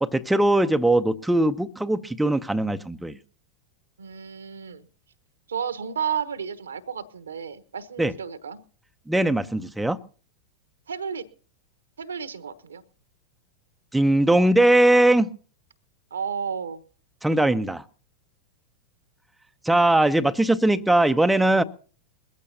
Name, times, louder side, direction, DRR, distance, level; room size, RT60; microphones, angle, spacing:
voice 1, 0.0-3.2 8.0-8.1 9.1-10.0 13.9-15.3 17.2-17.8 19.6-21.6, right 1 dB, 5° right, 8 dB, 0.7 m, -20 dB
voice 2, 4.0-4.9 5.5-8.6 10.9-11.3 12.0-12.8 16.1-16.8, right 7 dB, 70° right, 13 dB, 1.1 m, -32 dB
21.5 x 15.0 x 2.7 m, 0.40 s
figure-of-eight pair, 90°, 0 cm